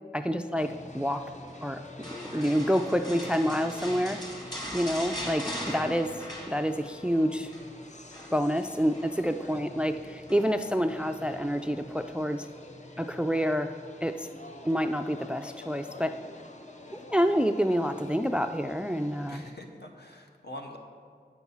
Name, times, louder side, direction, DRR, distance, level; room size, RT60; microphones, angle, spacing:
voice 1, 0.1-1.2 1.6-1.8 2.3-4.2 4.7-6.1 6.5-7.5 8.3-12.5 13.0-13.7 14.0-14.3 14.6-16.2 16.9-19.4, equal, 5° right, 9 dB, 0.3 m, -28 dB
sound 1, 0.5-19.5, left 2 dB, 40° left, 0.7 m, -47 dB
sound 2, 2.0-7.0 7.3-7.7 8.1-9.1 10.3-10.7 11.2-11.4, equal, 25° left, 1.6 m, -40 dB
voice 2, 19.3-20.8, left 1 dB, 70° left, 2 dB, 1.0 m, -45 dB
8.4 x 6.0 x 5.5 m, 2.2 s
wide cardioid pair, 55°, 18 cm